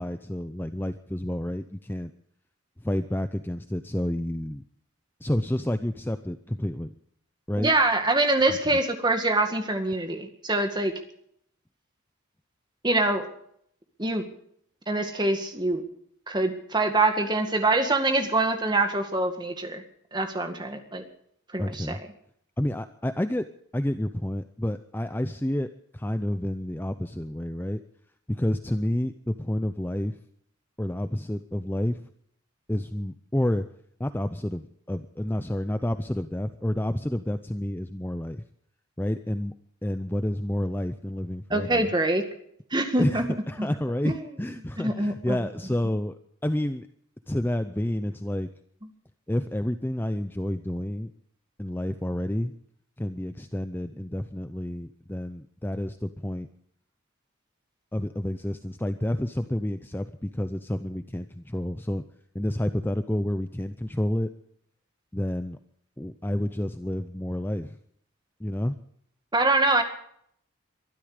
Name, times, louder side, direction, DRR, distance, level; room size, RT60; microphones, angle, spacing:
voice 1, 0.0-2.1 2.8-4.6 5.2-6.9 7.5-7.7 8.5-8.6 21.6-22.0 22.6-27.8 28.3-30.2 30.8-32.0 32.7-33.7 34.0-38.4 39.0-39.5 39.8-41.9 43.0-46.9 47.3-48.5 49.3-51.1 51.6-52.5 53.0-56.5 57.9-62.0 62.3-64.3 65.1-65.6 66.0-67.8 68.4-68.8, left 1 dB, 10° left, 10 dB, 0.5 m, -29 dB
voice 2, 7.6-10.9 12.8-13.3 14.0-14.2 14.9-15.8 16.3-19.8 20.1-21.0 21.5-22.0 41.5-42.2 42.7-43.2 43.6-43.7 44.0-44.2 44.8-45.4 69.3-69.8, right 2 dB, 20° right, 6 dB, 2.0 m, -24 dB
23.0 x 12.5 x 5.0 m, 0.68 s
head